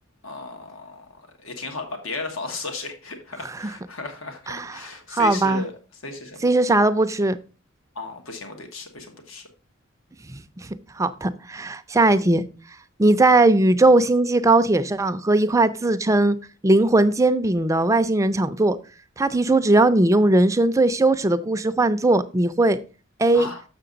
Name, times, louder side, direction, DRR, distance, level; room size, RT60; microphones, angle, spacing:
voice 1, 0.2-5.7 6.0-6.4 7.9-9.5 23.3-23.6, left 3 dB, 80° left, 1.3 m, -35 dB
voice 2, 5.1-5.6 6.4-7.4 10.3-12.4 13.0-16.4 16.6-18.8 19.2-22.8 23.2-23.5, right 2 dB, 15° right, 0.5 m, -19 dB
6.8 x 6.8 x 3.9 m
head